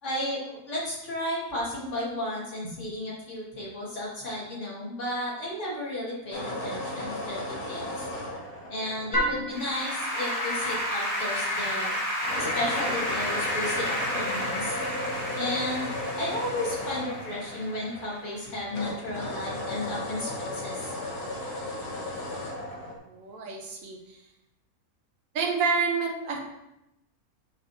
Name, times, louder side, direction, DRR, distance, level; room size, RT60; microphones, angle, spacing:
voice 1, 0.0-8.1 8.7-11.9 12.3-14.8 15.3-15.9 16.2-20.9, left 1 dB, 50° left, -6 dB, 2.4 m, -33 dB
sound 1, 6.3-9.7 12.2-18.4 18.7-23.0, left 1 dB, 75° left, 1.9 m, -35 dB
Applause / Keyboard (musical), 9.1-18.5, equal, 25° left, 1.4 m, -31 dB
voice 2, 23.1-24.0 25.3-26.4, right 5 dB, 65° right, -1 dB, 1.4 m, -28 dB
7.5 x 5.0 x 2.8 m, 0.87 s
omnidirectional pair, 1.6 m